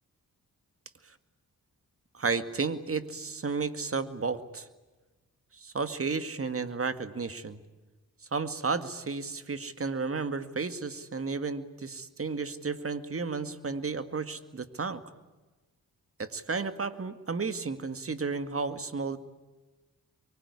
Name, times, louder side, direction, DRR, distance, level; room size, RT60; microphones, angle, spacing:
voice 1, 2.1-4.7 5.5-7.6 8.3-15.0 16.2-19.2, right 4 dB, 40° right, 11 dB, 2.1 m, -33 dB
24.0 x 24.0 x 9.9 m, 1.2 s
cardioid pair, 60°, 34 cm